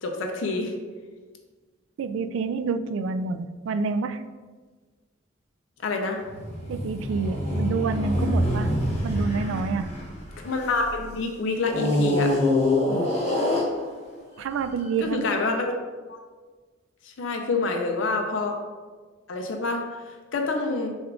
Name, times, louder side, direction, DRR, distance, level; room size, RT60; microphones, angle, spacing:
voice 1, 0.0-0.7 5.8-6.2 10.4-12.4 15.0-15.8 16.1-16.2 17.0-18.5 19.3-19.9 20.3-21.0, left 3 dB, 75° left, 3 dB, 0.5 m, -27 dB
voice 2, 2.0-4.2 6.7-8.7 9.0-9.9 12.9-13.1 14.4-15.3, right 4 dB, 90° right, 10 dB, 0.3 m, -28 dB
sound 1, 6.2-10.9 11.7-14.2 14.9-15.0, left 1 dB, 35° left, 1.0 m, -25 dB
6.1 x 2.4 x 3.6 m, 1.4 s
head